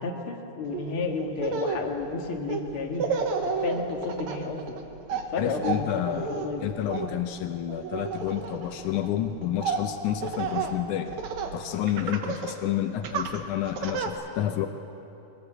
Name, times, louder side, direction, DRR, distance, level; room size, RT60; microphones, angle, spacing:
voice 1, 0.0-3.2 3.6-4.8 5.3-6.7, left 3 dB, 50° left, 1 dB, 2.5 m, -31 dB
Laughter, 0.7-0.9 1.3-11.6 11.9-12.6 13.0-14.1, right 5 dB, 70° right, 2.6 m, -32 dB
voice 2, 5.4-6.3 6.6-11.1 11.5-14.7, left 12 dB, 85° left, 7 dB, 2.3 m, -29 dB
23.0 x 19.0 x 7.9 m, 2.9 s
omnidirectional pair, 3.4 m